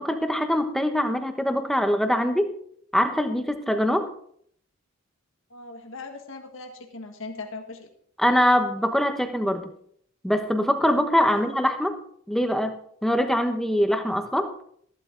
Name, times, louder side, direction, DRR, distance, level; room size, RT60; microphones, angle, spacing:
voice 1, 0.0-2.5 2.9-4.1 8.2-9.7 10.2-12.0 12.3-14.5, equal, ahead, 6 dB, 1.0 m, -23 dB
voice 2, 5.5-7.9 11.3-11.5, left 3 dB, 60° left, 4 dB, 1.7 m, -39 dB
14.5 x 12.0 x 3.8 m, 0.64 s
head